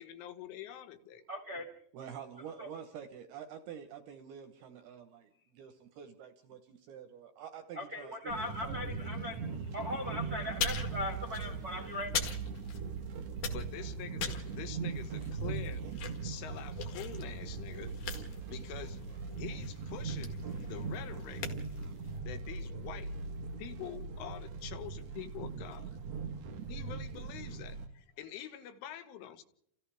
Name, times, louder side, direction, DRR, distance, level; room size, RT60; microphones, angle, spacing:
voice 1, 0.0-1.2 13.5-15.8 16.2-18.0 18.5-19.0 19.3-21.5 22.2-23.1 23.6-25.9 26.7-29.4, left 10 dB, 80° left, 3.7 m, -46 dB
voice 2, 1.3-1.7 2.6-2.7 7.7-12.1, left 1 dB, 40° right, 1.2 m, -39 dB
voice 3, 1.9-8.9, right 8 dB, 70° right, 2.5 m, -48 dB
sound 1, 8.3-27.9, right 5 dB, 90° right, 1.5 m, -40 dB
sound 2, 10.5-13.0 13.3-22.2, left 6 dB, 55° left, 3.0 m, -41 dB
30.0 x 28.5 x 3.5 m
omnidirectional pair, 5.6 m